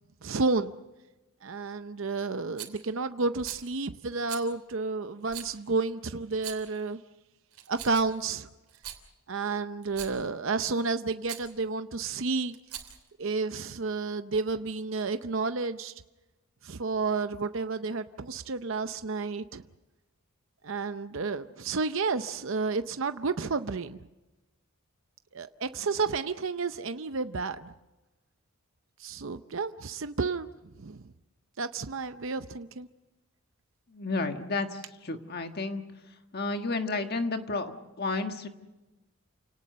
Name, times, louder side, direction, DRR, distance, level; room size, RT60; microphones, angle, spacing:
voice 1, 0.2-0.7 1.4-7.0 7.7-8.5 9.3-12.5 13.2-15.9 16.6-19.6 20.6-24.0 25.3-27.7 29.0-30.5 30.8-31.0 31.6-32.9, right 4 dB, 60° right, 10 dB, 0.7 m, -31 dB
Rattle, 2.6-2.8 3.4-3.7 4.3-4.5 5.3-5.5 6.3-6.8 7.5-8.2 8.7-9.0 9.8-10.2 11.2-11.5 12.5-13.1, right 11 dB, 85° right, 3.2 m, -41 dB
voice 2, 33.9-35.8 36.3-38.5, left 3 dB, 45° left, 6 dB, 1.5 m, -32 dB
29.0 x 18.5 x 6.6 m, 1.1 s
head